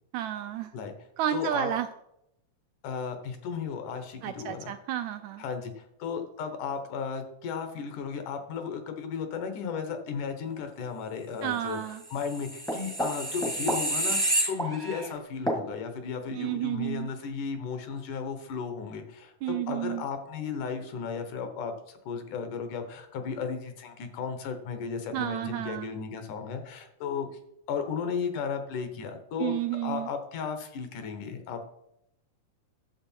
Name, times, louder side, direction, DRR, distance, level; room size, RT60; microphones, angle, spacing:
voice 1, 0.1-0.7 1.2-1.9 4.2-5.4 11.4-12.0 16.3-17.1 19.4-20.0 25.1-25.9 29.4-30.1, right 12 dB, 80° right, 9 dB, 1.7 m, -31 dB
voice 2, 1.3-1.7 2.8-4.7 5.4-11.8 12.1-21.7 22.1-27.3 27.7-29.6 29.8-31.6, left 6 dB, 75° left, 7 dB, 2.6 m, -35 dB
sound 1, 12.2-15.1 15.5-15.6, right 1 dB, 5° left, 0.6 m, -29 dB
11.0 x 7.5 x 4.5 m, 0.78 s
omnidirectional pair, 3.6 m